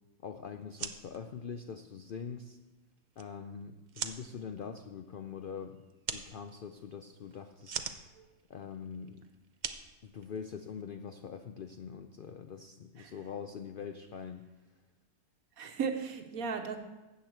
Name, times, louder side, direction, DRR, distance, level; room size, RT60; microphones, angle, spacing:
voice 1, 0.2-2.6 3.2-5.8 6.1-7.9 8.5-9.2 10.0-14.5, left 6 dB, 75° left, 7 dB, 0.5 m, -43 dB
sound 1, 0.6-10.8, right 6 dB, 55° right, 0.5 m, -45 dB
voice 2, 15.6-16.8, right 6 dB, 70° right, 6 dB, 1.4 m, -36 dB
13.0 x 8.1 x 4.5 m, 1.1 s
omnidirectional pair, 1.6 m